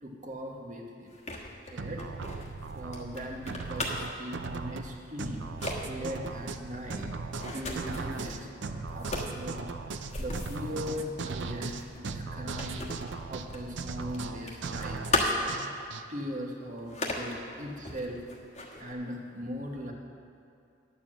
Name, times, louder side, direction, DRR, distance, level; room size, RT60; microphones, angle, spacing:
voice 1, 0.0-1.1 1.7-2.1 2.7-5.4 5.9-7.1 7.4-12.9 13.3-15.2 16.1-18.2 18.8-19.9, equal, 40° right, 0 dB, 1.3 m, -39 dB
sound 1, 1.1-4.2 4.9-5.1 5.4-5.8 6.2-8.4 8.9-13.8 14.0-15.7 16.1-16.2 16.8-17.4 17.8-18.9, left 2 dB, 40° left, 1.3 m, -36 dB
sound 2, 1.8-16.0, right 4 dB, 75° right, 0.6 m, -38 dB
10.5 x 7.1 x 7.5 m, 2.5 s
head